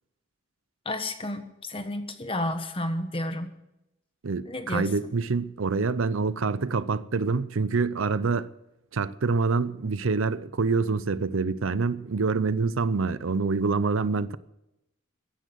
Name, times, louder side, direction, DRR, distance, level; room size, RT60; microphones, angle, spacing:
voice 1, 0.8-3.5 4.5-4.9, left 1 dB, 25° left, 1.3 m, -31 dB
voice 2, 4.2-8.5 8.9-14.4, right 4 dB, 70° right, 0.6 m, -26 dB
16.0 x 10.0 x 7.9 m
head